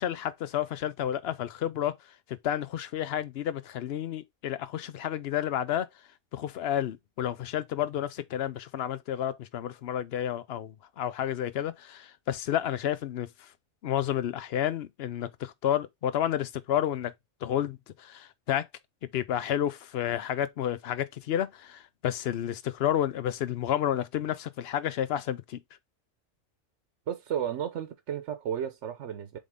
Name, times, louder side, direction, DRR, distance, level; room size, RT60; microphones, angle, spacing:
voice 1, 0.0-2.0 2.3-5.9 6.3-13.5 13.8-17.1 17.4-18.7 19.1-25.6, left 10 dB, 60° left, 0.8 m, -30 dB
voice 2, 27.1-29.4, right 9 dB, 75° right, 1.0 m, -33 dB
7.5 x 3.6 x 3.6 m
omnidirectional pair, 1.2 m